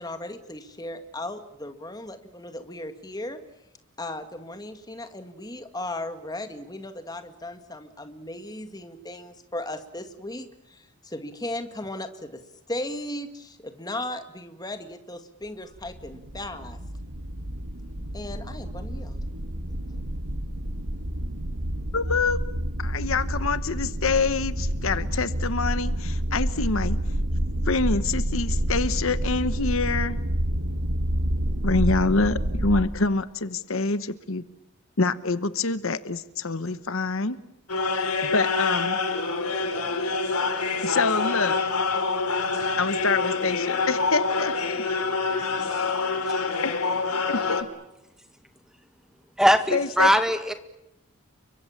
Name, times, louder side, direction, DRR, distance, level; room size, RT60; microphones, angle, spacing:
voice 1, 0.0-3.4 4.0-12.4 12.7-16.8 18.1-19.2, left 1 dB, 15° left, 8 dB, 2.0 m, -36 dB
sound 1, 15.8-32.8, right 1 dB, 70° right, 2.2 m, -28 dB
voice 2, 21.9-22.4 22.8-27.0 27.7-30.2 31.6-34.4 35.0-37.4 37.9-38.1 38.3-39.0 40.8-41.6 42.8-44.5 45.4-45.5 46.6-46.7 47.3-47.7 49.7-50.1, left 3 dB, 65° left, 13 dB, 1.1 m, -26 dB
sound 2, 37.7-47.6, left 4 dB, 85° left, 3.4 m, -26 dB
voice 3, 49.4-50.5, equal, ahead, 8 dB, 1.8 m, -20 dB
30.0 x 24.0 x 7.3 m, 0.87 s
head